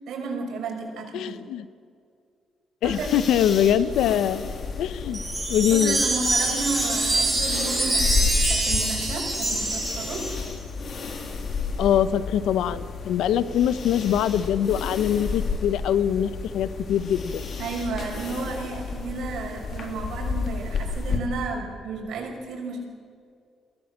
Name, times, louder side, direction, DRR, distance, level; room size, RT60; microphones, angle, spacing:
voice 1, 0.1-1.4 2.8-3.3 5.7-10.3 17.6-22.9, right 4 dB, 75° right, 0 dB, 5.7 m, -32 dB
voice 2, 1.1-1.7 2.8-4.5 4.8-5.2 5.5-6.0 11.8-17.4, left 9 dB, 85° left, 15 dB, 0.9 m, -23 dB
sound 1, 2.8-21.2, left 4 dB, 55° left, 2.9 m, -32 dB
Wind chime, 5.1-10.5, right 2 dB, 15° right, 7.4 m, -25 dB
23.0 x 18.0 x 7.4 m, 2.3 s
cardioid pair, 90°, 0 cm